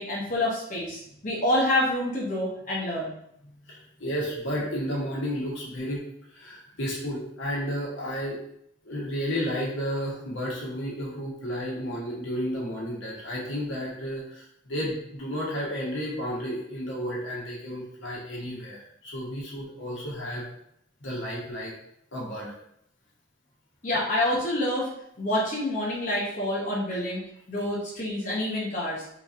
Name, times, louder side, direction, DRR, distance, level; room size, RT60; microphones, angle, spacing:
voice 1, 0.0-3.1 23.8-24.9 25.2-27.2 27.5-29.0, left 1 dB, 40° left, -6 dB, 0.8 m, -27 dB
voice 2, 3.4-6.0 6.3-8.3 8.8-20.4 21.0-21.7 22.1-22.5 26.9-27.0, equal, 80° left, -4 dB, 1.2 m, -32 dB
3.9 x 2.8 x 2.5 m, 0.73 s
head